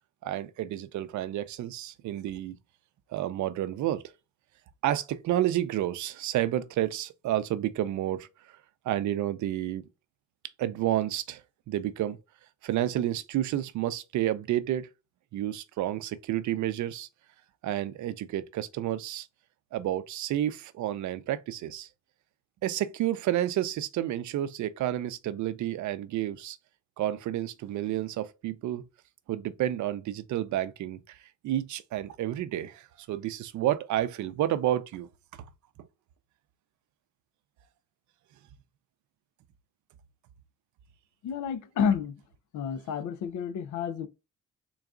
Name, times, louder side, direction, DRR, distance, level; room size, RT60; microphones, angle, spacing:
voice 1, 0.2-2.6 3.1-4.0 4.8-8.3 8.8-9.8 10.6-12.2 12.6-14.9 15.3-17.1 17.6-19.3 19.7-21.9 22.6-26.6 27.0-28.8 29.3-31.2 31.4-35.1, right 12 dB, 70° right, 0.5 m, -30 dB
voice 2, 41.2-42.2 42.5-44.1, left 7 dB, 75° left, 0.6 m, -30 dB
3.9 x 2.3 x 3.6 m
cardioid pair, 90°, 30 cm